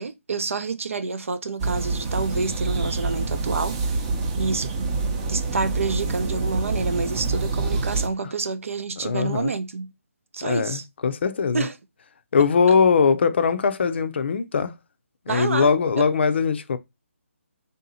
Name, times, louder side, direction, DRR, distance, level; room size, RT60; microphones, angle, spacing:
voice 1, 0.0-4.0 4.4-4.8 5.3-9.9 10.3-10.8 11.5-11.8 15.3-16.1, right 4 dB, 65° right, 0.6 m, -28 dB
sound 1, 1.6-8.1, right 3 dB, 25° right, 0.6 m, -26 dB
voice 2, 9.0-9.5 10.4-11.6 12.3-14.7 15.3-16.8, left 5 dB, 50° left, 0.5 m, -21 dB
3.5 x 2.7 x 4.0 m
figure-of-eight pair, 155°, 8 cm